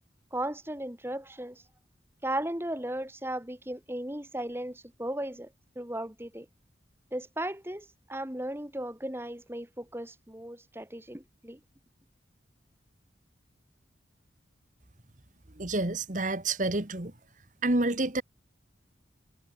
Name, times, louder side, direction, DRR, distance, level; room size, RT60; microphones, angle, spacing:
voice 1, 0.3-1.6 2.2-6.5 7.1-11.6, right 1 dB, 10° right, 1.8 m, -36 dB
voice 2, 15.6-17.1 17.6-18.2, right 2 dB, 40° right, 1.6 m, -28 dB
head